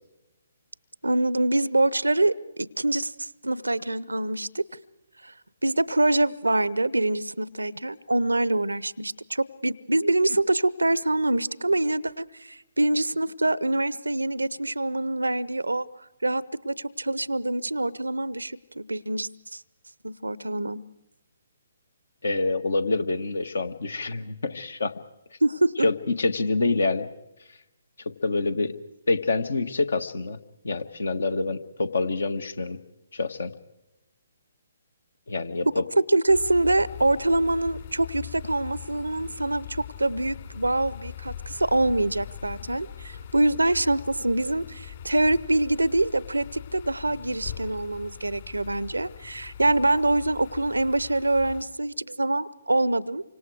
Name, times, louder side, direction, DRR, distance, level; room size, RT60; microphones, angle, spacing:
voice 1, 1.0-4.6 5.2-5.3 5.6-15.9 16.2-19.6 20.0-20.8 25.4-25.9 36.1-53.2, right 2 dB, 80° right, 20 dB, 0.8 m, -25 dB
voice 2, 22.2-24.9 25.8-27.1 28.2-28.7 29.1-30.4 30.6-32.8 33.1-33.5 35.3-35.8, left 3 dB, 65° left, 11 dB, 1.5 m, -26 dB
sound 1, 36.3-51.6, left 9 dB, 45° left, 3.9 m, -41 dB
29.0 x 25.0 x 4.8 m, 0.93 s
figure-of-eight pair, 135°, 0 cm